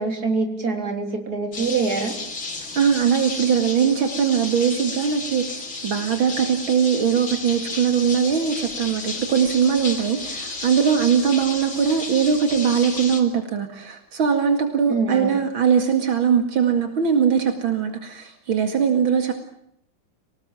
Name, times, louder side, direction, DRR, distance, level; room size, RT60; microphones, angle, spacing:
voice 1, 0.0-2.1 14.9-15.4, right 4 dB, 45° right, 4 dB, 4.3 m, -24 dB
sound 1, 1.5-13.2, left 3 dB, 75° left, 4.7 m, -33 dB
voice 2, 2.7-19.3, right 7 dB, 75° right, 6 dB, 2.9 m, -21 dB
26.0 x 19.0 x 9.0 m, 0.74 s
omnidirectional pair, 2.2 m